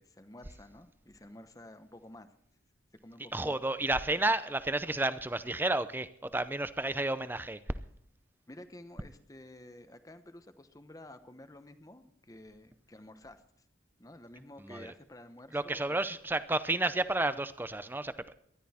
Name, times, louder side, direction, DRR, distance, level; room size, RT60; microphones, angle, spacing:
voice 1, 0.0-2.3 3.0-3.6 8.5-13.4 14.0-16.0, left 1 dB, 20° left, 9 dB, 1.0 m, -51 dB
voice 2, 3.3-7.6 14.6-14.9 15.5-18.3, right 2 dB, 10° right, 13 dB, 0.6 m, -31 dB
19.0 x 12.5 x 4.3 m, 0.69 s
head